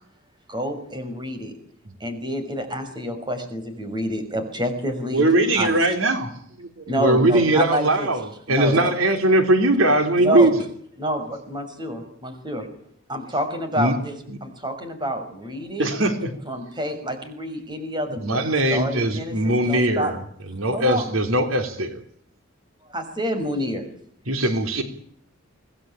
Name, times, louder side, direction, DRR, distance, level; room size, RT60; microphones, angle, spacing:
voice 1, 0.5-1.5 2.0-5.2 5.6-5.8 6.9-8.1 8.5-8.9 10.2-10.5 11.0-12.7 13.1-14.2 14.4-15.9 16.5-18.4 18.7-20.1 20.7-21.0 22.9-23.9, equal, 20° right, 7 dB, 6.0 m, -28 dB
voice 2, 5.1-6.3 15.8-16.3 24.8-24.9, right 2 dB, 65° right, 7 dB, 4.3 m, -20 dB
voice 3, 6.8-10.5 13.7-13.9 18.2-20.2 20.5-22.0 24.3-24.8, right 1 dB, 85° right, 7 dB, 3.3 m, -20 dB
26.0 x 19.5 x 8.9 m, 0.64 s
head